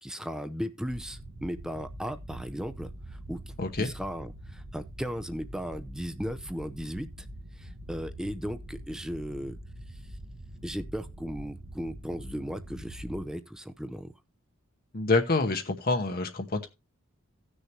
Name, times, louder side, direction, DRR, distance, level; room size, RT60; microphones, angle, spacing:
voice 1, 0.0-7.3 7.5-9.6 9.9-10.0 10.6-14.1, equal, 5° right, 0.6 m, -36 dB
sound 1, 0.9-13.2, right 1 dB, 65° right, 1.5 m, -44 dB
voice 2, 3.6-3.9 14.9-16.7, left 3 dB, 50° left, 1.0 m, -27 dB
16.5 x 6.5 x 2.9 m
head